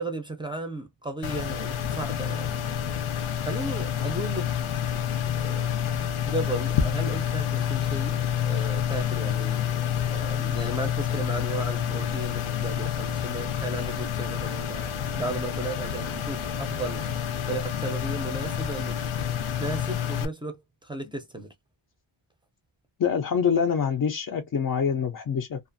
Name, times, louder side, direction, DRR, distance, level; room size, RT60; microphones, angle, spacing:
voice 1, 0.0-2.6 3.4-4.5 5.3-9.6 10.1-17.0 17.5-19.0 19.6-21.5, right 2 dB, 10° right, 0.5 m, -35 dB
sound 1, 1.2-20.3, left 9 dB, 85° left, 0.6 m, -28 dB
voice 2, 23.0-25.6, left 7 dB, 45° left, 0.5 m, -25 dB
2.4 x 2.4 x 2.5 m
wide cardioid pair, 150°, 49 cm